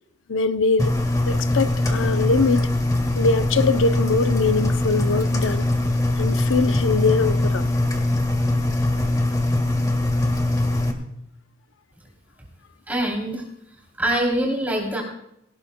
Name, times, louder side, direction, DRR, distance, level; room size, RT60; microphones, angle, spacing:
voice 1, 0.3-0.9 1.3-2.7 3.2-5.7 6.1-7.7, left 4 dB, 80° left, 0.7 m, -22 dB
Engine, 0.8-10.9, left 1 dB, 20° left, 1.5 m, -22 dB
voice 2, 12.9-13.4 14.0-15.0, right 1 dB, 10° right, 3.2 m, -23 dB
18.0 x 17.5 x 2.2 m
head